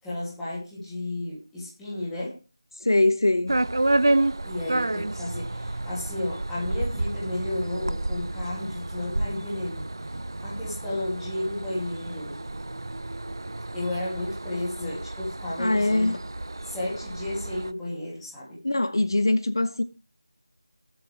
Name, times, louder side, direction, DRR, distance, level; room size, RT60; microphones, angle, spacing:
voice 1, 0.0-2.4 4.4-9.9 10.4-12.4 13.7-16.1 16.6-18.6, left 1 dB, ahead, 2.9 m, -33 dB
voice 2, 2.8-3.6 15.6-16.2 18.6-19.8, left 2 dB, 65° left, 1.2 m, -22 dB
sound 1, 3.5-17.7, right 2 dB, 65° right, 0.6 m, -30 dB
20.5 x 8.0 x 3.5 m
figure-of-eight pair, 180°, 2 cm